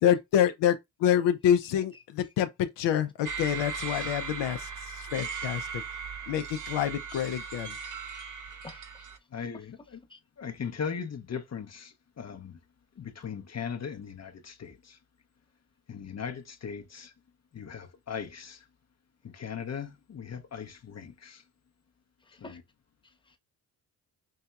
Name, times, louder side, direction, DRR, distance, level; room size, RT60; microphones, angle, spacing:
voice 1, 0.0-5.7 6.3-7.8, left 10 dB, 80° left, 0.6 m, -27 dB
sound 1, 3.2-9.2, right 5 dB, 45° right, 0.8 m, -38 dB
voice 2, 8.6-9.1 10.1-10.2 22.2-22.6 23.0-23.4, left 2 dB, 10° left, 1.0 m, -49 dB
voice 3, 9.3-10.0 10.4-12.6 13.0-15.0 15.9-17.1 17.5-18.7 19.2-21.4 22.4-22.6, left 7 dB, 40° left, 0.7 m, -39 dB
5.5 x 2.7 x 2.3 m
supercardioid pair, 60°, 42 cm